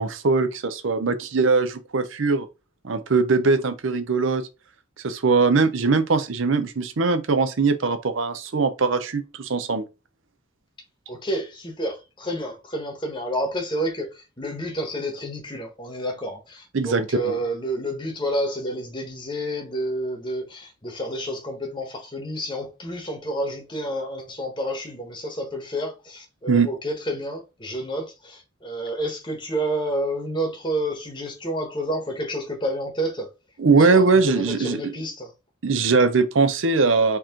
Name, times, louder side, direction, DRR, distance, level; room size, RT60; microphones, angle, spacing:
voice 1, 0.0-2.5 2.8-4.5 5.0-9.9 16.7-17.3 26.5-26.7 33.6-34.9 35.6-37.2, right 4 dB, 65° right, 0.6 m, -21 dB
voice 2, 11.1-33.3 33.7-35.3, equal, 20° left, 1.1 m, -29 dB
4.5 x 3.0 x 3.7 m
head